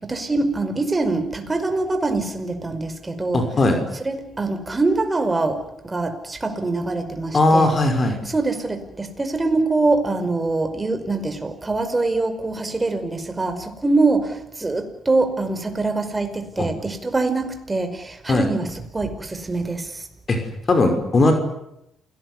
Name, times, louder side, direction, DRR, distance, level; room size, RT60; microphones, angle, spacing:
voice 1, 0.0-3.4 4.0-7.7 8.3-18.7 18.9-20.0, right 3 dB, 20° right, 7 dB, 5.3 m, -24 dB
voice 2, 3.3-3.8 7.3-8.2 16.6-16.7 18.3-18.5 20.3-20.4 20.7-21.3, left 2 dB, 35° left, 6 dB, 5.8 m, -18 dB
28.5 x 18.5 x 9.8 m, 0.82 s
cardioid pair, 90°, 0 cm